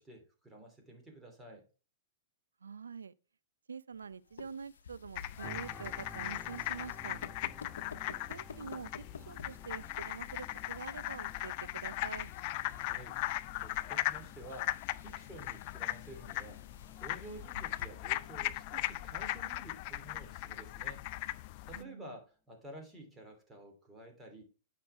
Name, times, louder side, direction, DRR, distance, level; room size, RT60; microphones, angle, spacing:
voice 1, 0.0-1.6 12.8-13.2 13.5-16.6 16.9-21.1 21.6-24.4, right 1 dB, 10° right, 3.0 m, -51 dB
voice 2, 2.6-3.1 3.7-7.2 8.1-12.3 21.7-22.2, right 6 dB, 85° right, 0.5 m, -46 dB
sound 1, 3.9-17.9, left 6 dB, 75° left, 0.7 m, -53 dB
sound 2, 5.2-21.8, left 17 dB, 50° left, 0.4 m, -39 dB
sound 3, 5.4-20.4 20.9-21.1, left 1 dB, 10° left, 0.8 m, -56 dB
9.5 x 5.9 x 3.3 m
hypercardioid pair, 110°, 0 cm